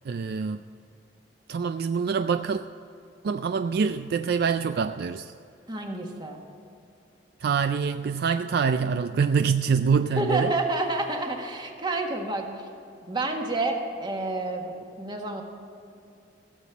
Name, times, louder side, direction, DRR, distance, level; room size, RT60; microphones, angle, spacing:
voice 1, 0.1-0.6 1.5-2.6 3.2-5.3 7.4-10.5, right 6 dB, 60° right, 10 dB, 0.3 m, -25 dB
voice 2, 5.7-6.4 10.1-12.5 13.1-15.4, right 2 dB, 25° right, 2 dB, 1.5 m, -29 dB
15.0 x 7.3 x 8.2 m, 2.6 s
head